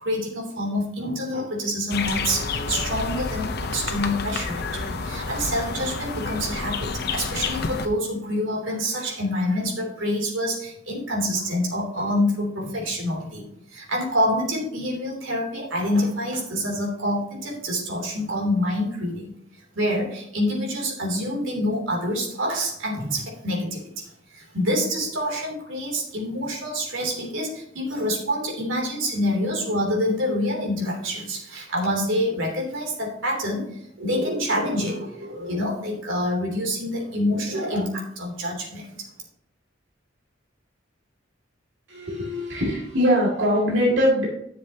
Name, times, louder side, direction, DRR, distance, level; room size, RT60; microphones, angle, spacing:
voice 1, 0.0-13.4 13.7-19.3 19.7-33.7 34.0-38.9, equal, 90° right, -1 dB, 3.1 m, -27 dB
sound 1, 1.9-7.9, left 4 dB, 55° left, 0.8 m, -29 dB
voice 2, 41.9-44.3, equal, 70° right, -4 dB, 2.5 m, -22 dB
11.0 x 7.2 x 2.9 m, 0.75 s
head